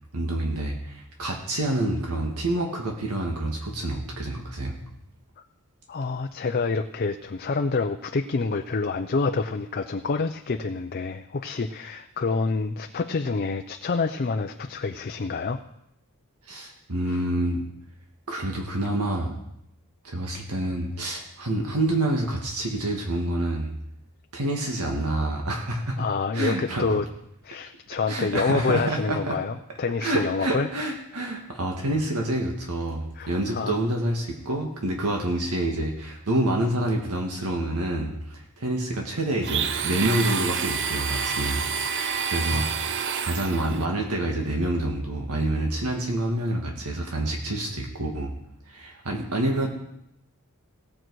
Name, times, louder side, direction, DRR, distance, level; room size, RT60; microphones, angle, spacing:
voice 1, 0.1-4.8 16.5-17.6 18.3-19.3 20.0-23.7 24.3-26.0 26.3-27.0 28.1-29.4 30.0-41.6 42.3-42.7 43.2-48.3 48.7-49.7, right 1 dB, 85° right, 1 dB, 1.7 m, -27 dB
voice 2, 5.9-15.6 17.1-17.2 26.0-27.1 27.4-30.7 33.2-33.9 42.5-43.0, left 4 dB, 45° left, 6 dB, 0.5 m, -27 dB
Domestic sounds home sounds, 39.4-43.9, right 6 dB, 55° right, 0.6 m, -28 dB
17.5 x 7.7 x 4.7 m, 0.80 s
head